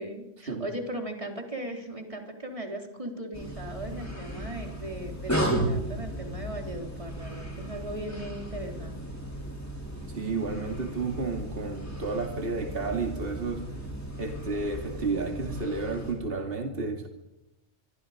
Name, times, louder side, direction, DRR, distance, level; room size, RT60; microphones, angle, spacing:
voice 1, 0.0-9.0, right 1 dB, 25° right, 2 dB, 3.9 m, -38 dB
sound 1, 3.3-16.1, right 1 dB, 10° left, 6.3 m, -35 dB
voice 2, 10.1-13.6 14.2-17.1, right 3 dB, 45° right, 3 dB, 2.8 m, -31 dB
26.5 x 24.0 x 5.1 m, 0.86 s
omnidirectional pair, 1.3 m